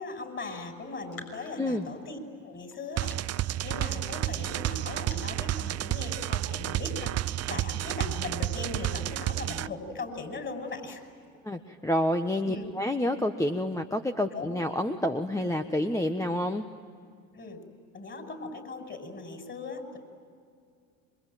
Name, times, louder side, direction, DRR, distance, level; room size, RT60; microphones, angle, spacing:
voice 1, 0.0-11.0 12.4-12.7 14.3-14.6 17.3-17.6 17.9-20.0, left 3 dB, 30° left, 5 dB, 6.0 m, -39 dB
Raindrop, 0.7-11.4, left 3 dB, 60° left, 6.5 m, -56 dB
sound 1, 3.0-9.7, right 13 dB, 40° right, 0.7 m, -31 dB
voice 2, 11.4-16.6, left 1 dB, 10° left, 6 dB, 1.3 m, -28 dB
27.5 x 23.5 x 9.2 m, 2.2 s
hypercardioid pair, 80°, 40 cm